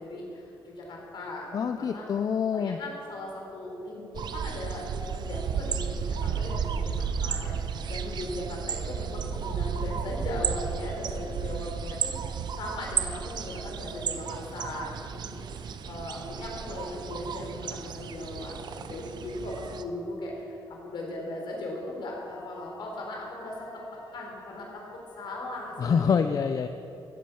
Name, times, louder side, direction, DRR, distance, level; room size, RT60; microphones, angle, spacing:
voice 1, 0.0-2.1 2.5-26.2, left 1 dB, 65° left, -1 dB, 3.9 m, -38 dB
voice 2, 1.5-2.8 25.8-26.7, left 6 dB, 45° left, 8 dB, 0.5 m, -26 dB
sound 1, 4.1-19.8, right 7 dB, 55° right, 0.7 m, -33 dB
Wind instrument woodwind instrument, 22.0-25.5, left 4 dB, 85° left, 1.9 m, -53 dB
15.5 x 8.7 x 7.1 m, 2.9 s
cardioid pair, 140°, 9 cm